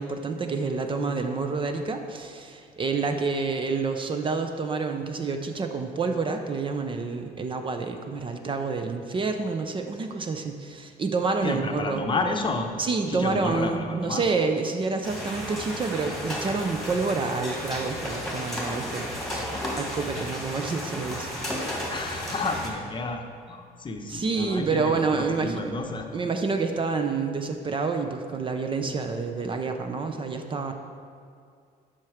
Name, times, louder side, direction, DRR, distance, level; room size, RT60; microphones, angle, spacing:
voice 1, 0.0-12.1 12.8-19.4 19.8-21.3 24.1-25.6 26.1-30.7, right 4 dB, 30° right, 6 dB, 0.6 m, -28 dB
voice 2, 11.4-12.7 13.1-14.2 21.9-26.1, left 3 dB, 30° left, 3 dB, 0.8 m, -31 dB
sound 1, 15.0-22.7, equal, ahead, 1.8 m, -33 dB
7.5 x 5.8 x 4.9 m, 2.3 s
cardioid pair, 110°, 17 cm